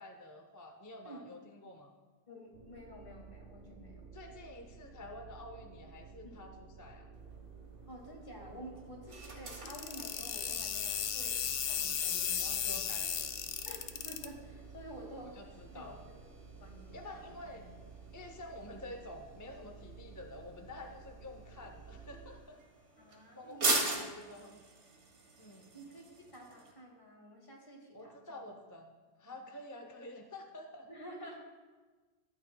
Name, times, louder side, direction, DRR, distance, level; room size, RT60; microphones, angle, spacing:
voice 1, 0.0-1.9 4.1-7.1 12.4-13.6 15.4-16.0 16.9-17.7 18.1-22.6 23.4-24.6 25.4-25.7 27.9-28.9 29.2-30.9, left 1 dB, 20° left, 4 dB, 0.5 m, -49 dB
voice 2, 2.3-4.1 6.2-6.4 7.9-13.0 13.7-15.4 15.7-16.1 16.6-17.3 23.0-24.2 25.7-28.5 29.3-29.4 30.9-31.4, equal, 50° left, -1 dB, 2.2 m, -50 dB
sound 1, 2.5-22.4, right 5 dB, 50° right, 1.7 m, -53 dB
sound 2, 7.1-26.7, right 2 dB, 75° right, 1.7 m, -43 dB
sound 3, 9.7-14.3, left 8 dB, 80° left, 1.0 m, -35 dB
14.5 x 8.9 x 2.2 m, 1.3 s
omnidirectional pair, 1.2 m